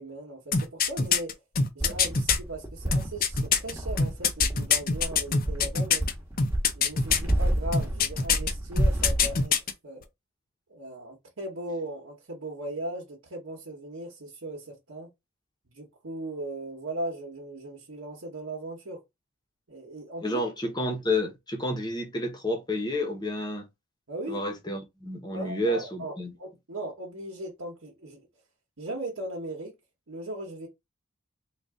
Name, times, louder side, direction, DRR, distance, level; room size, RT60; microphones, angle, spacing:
voice 1, 0.0-1.3 1.7-6.0 6.7-9.5 9.8-10.0 10.7-15.1 15.7-19.0 19.7-20.4 24.1-24.4 25.3-26.1 26.4-28.2 28.8-29.7 30.1-30.7, right 1 dB, 75° right, 1.1 m, -38 dB
sound 1, 0.5-2.4 2.9-6.1 6.4-7.3 7.7-8.5 8.8-9.7 10.0-10.1, left 5 dB, 45° left, 0.6 m, -24 dB
sound 2, 1.8-9.4, right 1 dB, 10° right, 1.3 m, -30 dB
voice 2, 20.2-23.7 24.3-26.3, left 1 dB, 20° left, 1.0 m, -30 dB
3.9 x 2.4 x 3.6 m
head